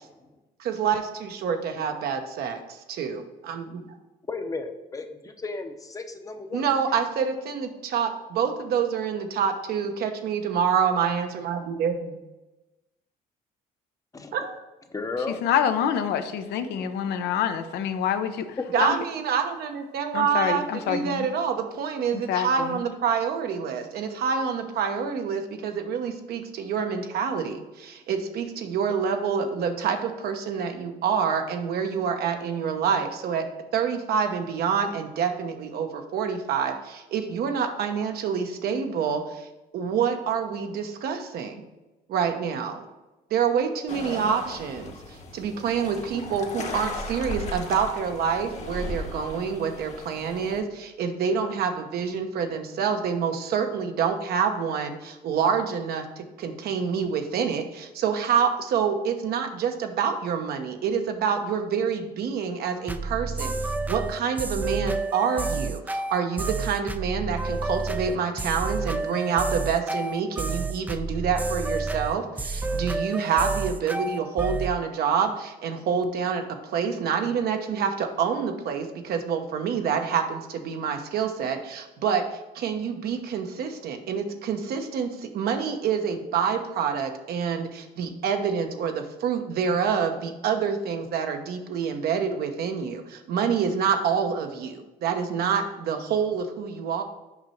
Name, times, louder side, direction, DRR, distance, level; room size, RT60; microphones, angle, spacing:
voice 1, 0.6-2.6 2.9-4.0 6.5-12.2 14.3-14.6 18.7-33.4 33.7-39.5 39.7-41.6 42.1-42.9 43.3-97.0, right 6 dB, 65° right, 6 dB, 0.9 m, -27 dB
voice 2, 4.3-7.0 14.1-14.4 14.9-15.4, left 3 dB, 20° left, 7 dB, 0.7 m, -34 dB
voice 3, 15.4-18.3 18.8-19.0 20.1-21.3 22.1-22.8, left 8 dB, 75° left, 9 dB, 0.6 m, -26 dB
sound 1, 43.9-50.6, left 1 dB, 40° left, 1.1 m, -37 dB
music loop, 62.9-74.8, right 3 dB, 10° right, 0.4 m, -29 dB
6.0 x 5.2 x 4.4 m, 1.0 s
cardioid pair, 110°, 17 cm